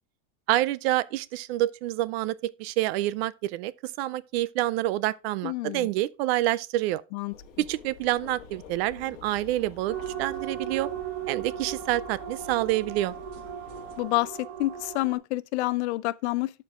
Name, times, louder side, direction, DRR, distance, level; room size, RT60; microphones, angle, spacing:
voice 1, 0.5-3.7 4.0-7.0 7.7-10.9 11.3-13.1, right 15 dB, 55° right, 0.5 m, -27 dB
voice 2, 5.4-5.9 7.1-7.3 14.0-16.5, left 19 dB, 65° left, 0.5 m, -28 dB
sound 1, 7.3-14.0, left 6 dB, 40° left, 1.9 m, -48 dB
sound 2, 9.9-15.2, right 9 dB, 75° right, 2.0 m, -37 dB
12.0 x 4.6 x 3.6 m
supercardioid pair, 180°, 37 cm